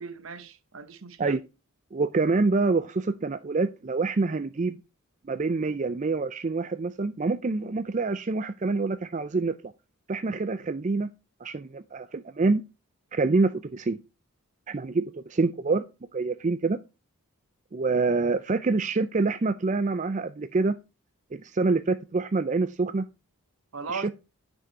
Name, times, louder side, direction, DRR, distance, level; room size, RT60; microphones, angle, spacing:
voice 1, 0.0-1.4 23.7-24.1, right 4 dB, 60° right, 0.9 m, -38 dB
voice 2, 1.9-4.8 5.3-9.5 10.1-11.1 11.4-12.6 13.1-14.0 14.7-15.8 16.1-16.8 17.7-20.7 21.3-23.0 23.9-24.1, right 3 dB, 35° right, 0.4 m, -26 dB
9.5 x 6.2 x 4.6 m
head